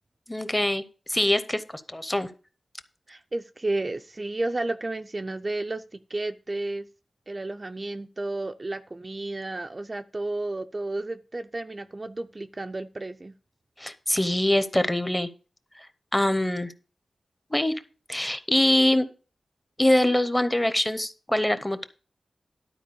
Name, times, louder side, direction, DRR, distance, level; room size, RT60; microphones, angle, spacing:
voice 1, 0.3-0.8 1.1-2.3 13.8-15.3 16.1-16.7 17.5-17.8 18.1-19.1 19.8-21.8, left 1 dB, 10° left, 12 dB, 0.8 m, -23 dB
voice 2, 3.1-6.9 7.3-13.3, right 2 dB, 30° right, 8 dB, 0.4 m, -32 dB
12.0 x 4.5 x 6.9 m, 0.37 s
wide cardioid pair, 115°, 0 cm